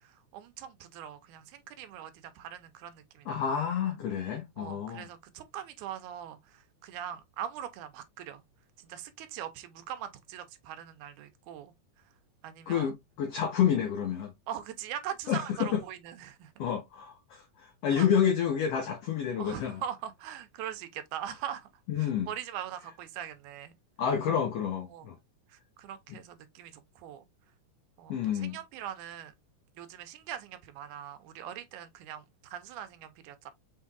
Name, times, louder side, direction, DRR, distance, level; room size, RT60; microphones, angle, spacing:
voice 1, 0.0-3.4 4.6-8.4 8.8-11.7 12.4-12.9 14.5-16.5 17.9-18.1 19.4-21.7 22.0-23.7 24.9-25.2 25.5-27.3 28.0-29.3 29.8-33.5, right 10 dB, 90° right, 2.2 m, -41 dB
voice 2, 3.3-5.0 12.7-14.3 15.3-15.8 16.6-19.8 21.9-22.3 24.0-25.2 26.1-26.2 28.1-28.6, left 8 dB, 70° left, 1.6 m, -29 dB
5.8 x 3.6 x 2.3 m
omnidirectional pair, 3.5 m